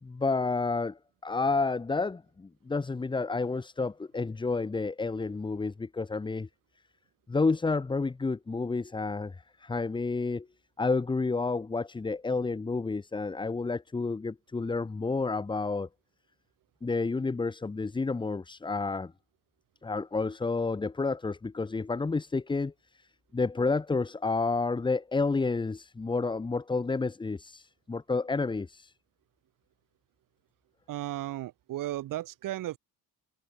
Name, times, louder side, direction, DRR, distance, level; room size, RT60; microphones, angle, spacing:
voice 1, 0.0-6.5 7.3-10.5 10.8-15.9 16.8-19.1 19.8-23.1 23.3-28.9, left 3 dB, 15° left, 1.4 m, -30 dB
voice 2, 30.9-32.8, right 14 dB, 60° right, 7.7 m, -35 dB
cardioid pair, 150°, 36 cm